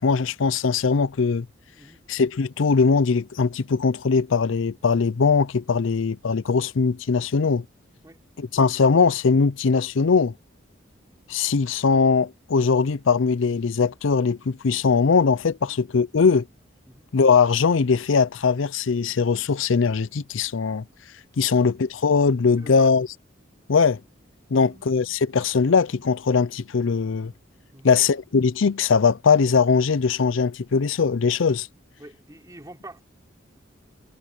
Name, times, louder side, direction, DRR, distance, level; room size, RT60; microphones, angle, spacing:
voice 1, 0.0-1.5 2.1-7.6 8.4-10.3 11.3-16.5 17.1-20.8 21.4-23.1 23.7-24.0 24.5-27.3 27.8-31.7, left 5 dB, 75° left, 0.5 m, -21 dB
voice 2, 22.5-22.9 24.5-25.2 27.7-28.0 32.0-33.0, right 1 dB, 15° right, 3.2 m, -46 dB
head